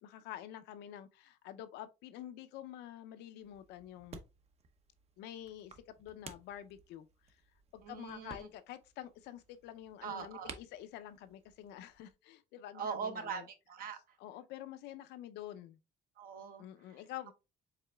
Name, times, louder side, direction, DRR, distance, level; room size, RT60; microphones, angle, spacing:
voice 1, 0.0-4.2 5.2-7.1 7.7-13.4 14.2-15.8 16.6-17.3, left 12 dB, 85° left, 0.5 m, -48 dB
sound 1, 3.4-12.1, right 4 dB, 40° right, 0.7 m, -56 dB
voice 2, 7.8-8.5 10.0-10.5 12.7-14.2 16.2-16.6, right 6 dB, 60° right, 1.0 m, -42 dB
4.9 x 3.6 x 2.2 m
cardioid pair, 110°, 17 cm